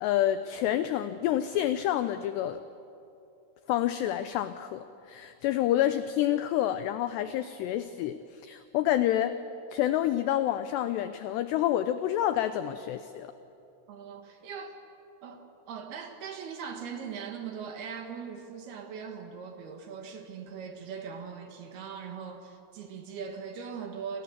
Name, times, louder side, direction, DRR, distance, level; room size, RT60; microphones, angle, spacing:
voice 1, 0.0-2.6 3.7-9.4 9.7-13.3, left 12 dB, 90° left, 11 dB, 2.4 m, -28 dB
voice 2, 13.9-14.8 15.2-24.2, right 6 dB, 60° right, 5 dB, 3.1 m, -40 dB
29.0 x 26.5 x 7.4 m, 2.8 s
omnidirectional pair, 5.8 m